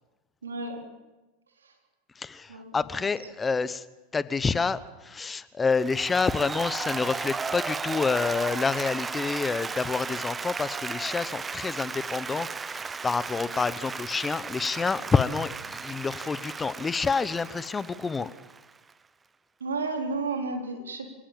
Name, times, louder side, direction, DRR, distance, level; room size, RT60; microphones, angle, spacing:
voice 1, 0.4-0.8 2.5-2.8 19.6-21.1, right 3 dB, 90° right, 3 dB, 3.8 m, -32 dB
voice 2, 2.1-3.8 4.1-18.3, left 4 dB, 20° left, 16 dB, 1.0 m, -28 dB
Applause, 5.7-18.9, right 5 dB, 20° right, 0.8 m, -35 dB
27.0 x 17.5 x 7.4 m, 1.1 s
hypercardioid pair, 90°, 0 cm